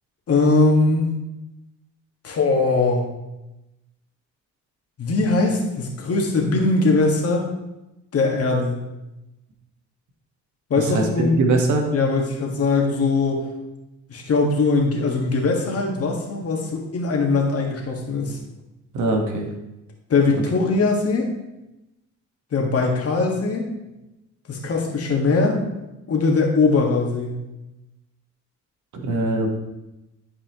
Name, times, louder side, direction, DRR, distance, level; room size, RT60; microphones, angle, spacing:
voice 1, 0.3-1.1 2.2-3.0 5.0-7.5 8.1-8.8 10.7-11.4 11.9-13.5 14.1-18.4 20.1-21.3 22.5-23.6 24.5-25.6 26.1-27.4, left 3 dB, 50° left, 1 dB, 1.8 m, -21 dB
voice 2, 10.8-11.9 18.9-19.5 28.9-29.5, right 3 dB, 75° right, 2 dB, 1.5 m, -22 dB
11.5 x 4.9 x 3.1 m, 0.96 s
cardioid pair, 90°, 30 cm